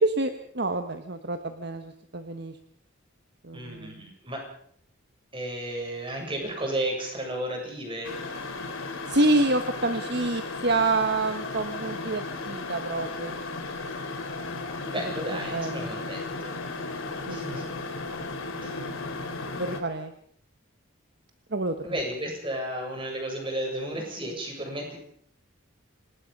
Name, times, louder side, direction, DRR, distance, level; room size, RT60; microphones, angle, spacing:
voice 1, 0.0-2.6 3.4-4.1 9.1-13.3 15.5-15.9 17.3-17.6 18.5-19.3 19.6-20.1 21.5-21.8, right 2 dB, 55° right, 8 dB, 1.3 m, -28 dB
voice 2, 3.5-4.4 5.3-8.2 14.8-16.6 17.3-17.7 18.6-18.9 21.8-25.0, right 1 dB, 25° right, 1 dB, 7.7 m, -33 dB
sound 1, 8.0-19.8, left 3 dB, 85° left, 4.0 m, -35 dB
26.0 x 20.0 x 5.4 m, 0.64 s
head